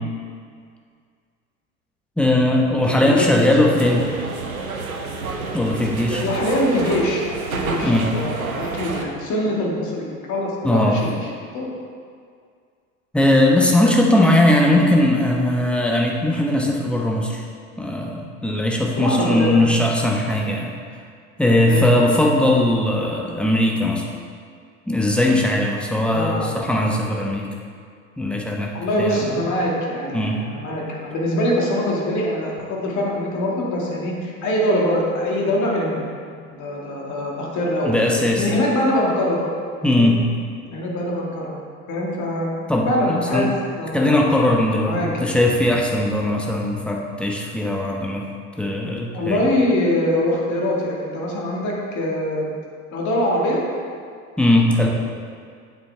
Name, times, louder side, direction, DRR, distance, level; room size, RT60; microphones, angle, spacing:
voice 1, 2.2-4.0 5.5-6.2 7.8-8.1 10.6-11.0 13.1-17.4 17.8-20.7 21.4-24.0 24.9-27.5 28.2-29.4 30.1-30.4 37.8-38.5 39.8-40.2 42.7-43.5 43.9-48.3 48.6-49.4 54.4-54.9, left 1 dB, 5° left, -1 dB, 1.2 m, -19 dB
voice 2, 3.0-3.7 4.0-4.2 6.2-7.3 7.5-11.3 11.5-11.7 19.0-19.6 21.7-22.0 26.1-26.5 28.7-36.0 36.5-38.0 38.4-39.4 39.8-40.1 40.6-41.6 41.9-42.5 42.9-43.5 43.8-44.4 44.9-45.1 49.1-52.5 52.9-53.6, left 1 dB, 45° left, -3 dB, 2.2 m, -23 dB
sound 1, 3.8-9.0, right 4 dB, 85° right, 0.8 m, -29 dB
8.7 x 7.4 x 3.4 m, 2.1 s
figure-of-eight pair, 75°, 41 cm